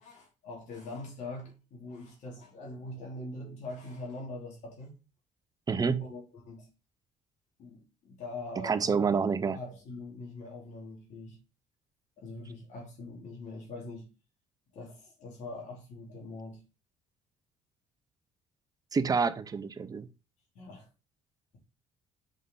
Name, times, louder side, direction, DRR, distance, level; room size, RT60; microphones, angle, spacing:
voice 1, 0.0-4.9 6.0-6.7 7.6-9.1 9.5-11.4 12.2-14.1 14.7-16.6 20.5-20.9, left 2 dB, 70° left, 2.7 m, -43 dB
voice 2, 5.7-6.1 8.6-9.6 18.9-20.1, right 5 dB, 30° right, 0.7 m, -28 dB
5.5 x 5.2 x 3.8 m
supercardioid pair, 80°, 13 cm